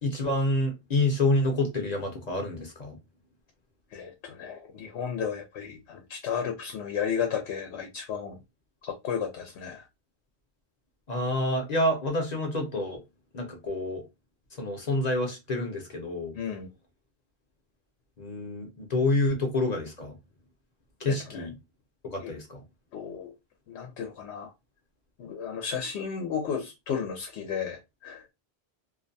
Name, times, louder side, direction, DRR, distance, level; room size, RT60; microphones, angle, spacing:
voice 1, 0.0-2.9 11.1-13.0 13.3-14.0 14.6-16.3 18.2-20.1 21.0-21.6 22.1-22.6, left 2 dB, 45° left, 0.7 m, -28 dB
voice 2, 3.9-8.4 8.9-9.8 16.3-16.7 21.1-21.5 22.2-22.3 22.9-23.3 23.7-24.5 25.2-28.2, left 7 dB, 90° left, 0.8 m, -33 dB
2.5 x 2.1 x 2.6 m
omnidirectional pair, 1.1 m